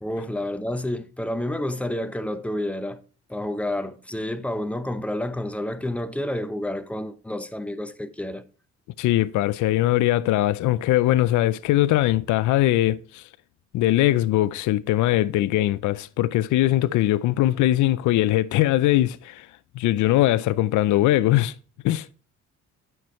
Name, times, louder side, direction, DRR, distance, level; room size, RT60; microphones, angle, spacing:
voice 1, 0.0-3.0 3.3-8.4, left 1 dB, 5° left, 0.7 m, -29 dB
voice 2, 9.0-13.2 13.7-19.5 19.8-21.5 21.8-22.1, left 15 dB, 80° left, 0.5 m, -21 dB
9.1 x 5.9 x 3.1 m
cardioid pair, 90°, 30 cm